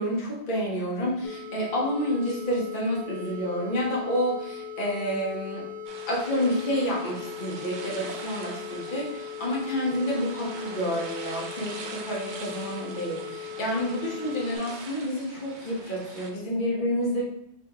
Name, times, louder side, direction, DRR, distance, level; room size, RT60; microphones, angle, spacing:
voice 1, 0.0-5.6 6.1-17.2, equal, 50° left, -5 dB, 1.1 m, -29 dB
sound 1, 1.2-14.6, left 7 dB, 20° left, 0.4 m, -39 dB
sound 2, 5.9-16.3, right 4 dB, 55° right, 0.6 m, -43 dB
3.8 x 3.4 x 2.8 m, 0.75 s
omnidirectional pair, 1.1 m